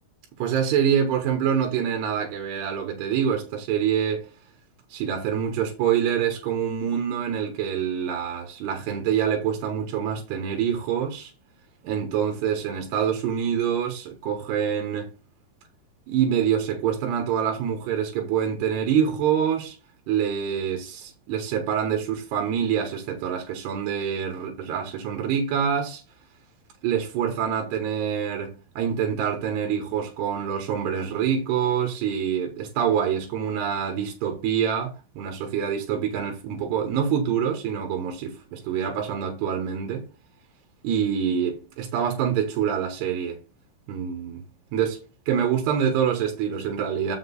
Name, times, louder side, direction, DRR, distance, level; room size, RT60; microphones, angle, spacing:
voice 1, 0.4-4.3 4.9-11.3 11.8-15.1 16.1-19.8 20.1-26.0 26.8-40.1 40.8-43.4 43.9-44.4 44.7-45.0 45.3-47.2, right 8 dB, 65° right, 3.2 m, -26 dB
7.8 x 7.2 x 4.0 m
omnidirectional pair, 5.6 m